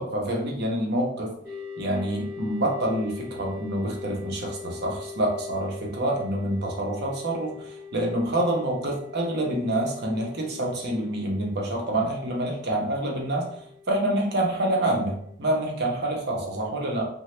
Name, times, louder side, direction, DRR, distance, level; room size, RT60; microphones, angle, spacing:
voice 1, 0.0-1.3 1.8-13.6 13.9-17.1, right 1 dB, 60° right, -1 dB, 0.7 m, -27 dB
sound 1, 1.4-15.3, left 6 dB, 15° right, 0.8 m, -42 dB
2.9 x 2.2 x 3.1 m, 0.69 s
head